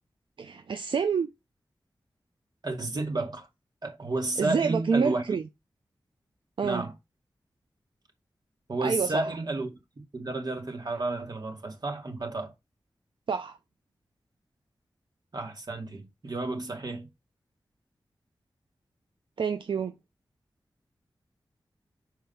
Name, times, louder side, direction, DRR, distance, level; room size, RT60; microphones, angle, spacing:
voice 1, 0.4-1.3 4.4-5.4 6.6-6.9 8.8-9.3 13.3-13.6 19.4-19.9, right 6 dB, 75° right, 0.6 m, -27 dB
voice 2, 2.6-3.5 3.8-5.2 6.6-6.9 8.7-9.7 10.1-12.5 15.3-17.1, right 2 dB, 55° right, 2.3 m, -31 dB
5.6 x 4.5 x 5.7 m
cardioid pair, 55°, 9 cm